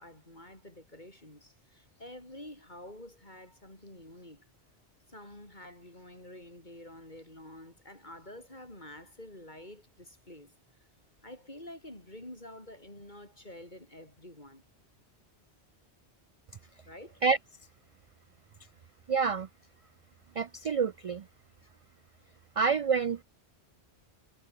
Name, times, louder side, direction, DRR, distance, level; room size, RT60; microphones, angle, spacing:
voice 1, 0.0-4.5 5.1-10.5 11.2-14.6 16.9-17.2, left 1 dB, 40° left, 7.2 m, -49 dB
voice 2, 19.1-19.5 20.4-21.2 22.6-23.2, right 5 dB, 50° right, 0.4 m, -27 dB
omnidirectional pair, 1.1 m